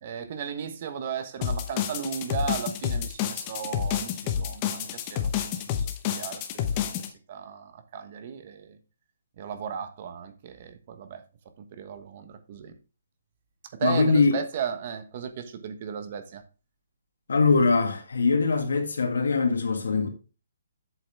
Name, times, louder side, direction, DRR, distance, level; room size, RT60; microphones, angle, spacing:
voice 1, 0.0-7.0 7.3-8.8 9.4-11.2 11.6-12.7 13.7-16.4, right 7 dB, 35° right, 1.2 m, -35 dB
sound 1, 1.4-7.1, left 9 dB, 20° left, 0.8 m, -29 dB
voice 2, 13.8-14.4 17.3-20.1, left 4 dB, 80° left, 1.9 m, -22 dB
8.0 x 7.0 x 3.4 m
hypercardioid pair, 170°, 0 cm